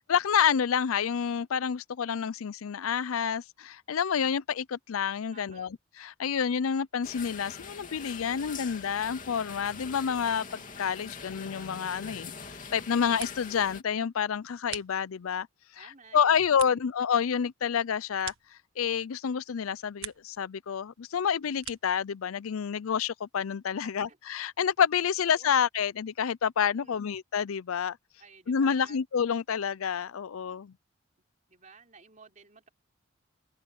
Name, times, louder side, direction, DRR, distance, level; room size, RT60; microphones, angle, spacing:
voice 1, 0.1-5.7 6.0-15.5 15.8-15.9 16.1-18.3 18.8-28.0 28.5-30.7, left 7 dB, 85° left, 0.5 m, -28 dB
voice 2, 5.3-5.7 15.8-16.9 23.8-24.2 25.3-25.5 26.8-27.1 28.2-29.0 31.5-32.7, right 4 dB, 35° right, 4.0 m, -55 dB
sound 1, 7.0-13.8, left 5 dB, 40° left, 2.9 m, -43 dB
sound 2, 14.3-15.4 15.9-19.1 19.5-20.4 20.7-22.1, right 12 dB, 80° right, 1.4 m, -46 dB
head